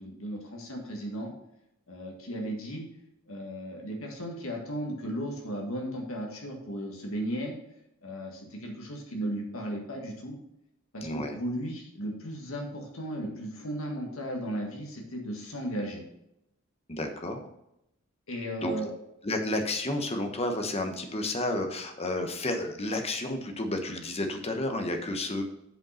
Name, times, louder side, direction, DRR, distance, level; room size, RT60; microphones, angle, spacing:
voice 1, 0.0-1.3 1.9-2.9 3.3-7.5 8.0-10.4 10.9-16.0 18.3-18.9, equal, 75° left, 1 dB, 1.9 m, -35 dB
voice 2, 11.0-11.4 16.9-17.4 18.6-18.9 19.2-25.4, left 1 dB, 30° left, 5 dB, 1.1 m, -31 dB
7.8 x 5.4 x 5.7 m, 0.82 s
head